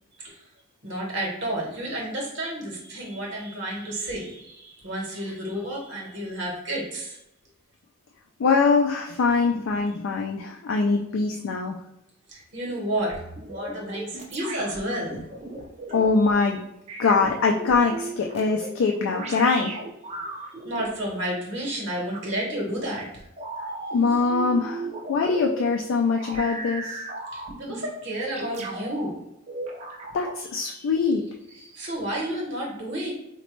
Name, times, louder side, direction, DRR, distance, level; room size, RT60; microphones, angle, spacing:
voice 1, 0.8-7.2 12.3-13.2 13.5-15.2 15.6-15.7 20.6-23.2 27.3-29.1 31.6-33.1, right 1 dB, 60° right, -2 dB, 1.0 m, -31 dB
voice 2, 8.4-11.8 15.9-16.6 17.0-19.7 23.9-27.0 30.1-31.2, left 4 dB, 75° left, 2 dB, 0.3 m, -23 dB
sound 1, 13.1-16.1 16.9-20.9 22.1-22.3 23.4-25.6 26.1-27.8 28.3-29.1 29.5-30.4, right 2 dB, 35° right, 0.5 m, -36 dB
4.0 x 2.2 x 3.0 m, 0.83 s
head